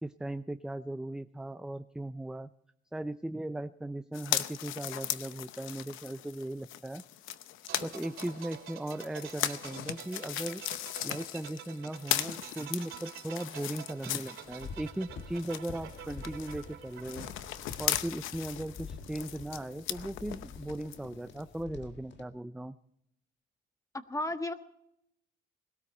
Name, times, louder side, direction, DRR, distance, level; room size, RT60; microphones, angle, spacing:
voice 1, 0.0-2.5 2.9-7.0 7.8-10.6 11.0-17.3 17.8-22.8, right 1 dB, 5° right, 12 dB, 0.5 m, -38 dB
sound 1, 4.1-14.9 15.2-21.0 21.4-21.5, left 12 dB, 90° left, 0.8 m, -38 dB
sound 2, 7.7-18.3 18.6-18.7, right 9 dB, 80° right, 2.7 m, -48 dB
sound 3, 14.4-22.2, left 5 dB, 65° left, 2.0 m, -47 dB
voice 2, 23.9-24.5, left 1 dB, 15° left, 8 dB, 1.4 m, -33 dB
20.5 x 13.5 x 4.3 m, 0.75 s
cardioid pair, 90°, 20 cm